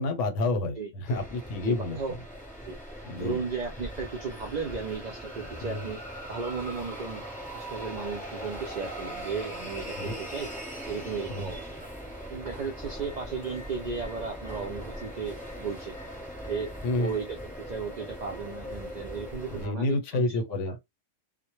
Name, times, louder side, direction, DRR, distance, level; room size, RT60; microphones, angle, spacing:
voice 1, 0.0-2.0 3.0-3.4 5.6-5.9 9.9-10.1 11.3-11.5 16.8-17.1 19.5-20.8, left 2 dB, 90° left, 1.0 m, -29 dB
sound 1, 1.0-19.7, equal, 10° left, 0.7 m, -40 dB
voice 2, 1.6-2.2 2.6-2.8 3.2-6.0 6.3-7.2 7.5-10.5 10.9-11.7 12.3-16.0 16.5-16.7 17.0-17.4 17.7-20.4 20.7-20.8, right 5 dB, 70° right, 0.4 m, -35 dB
2.0 x 2.0 x 3.0 m
omnidirectional pair, 1.2 m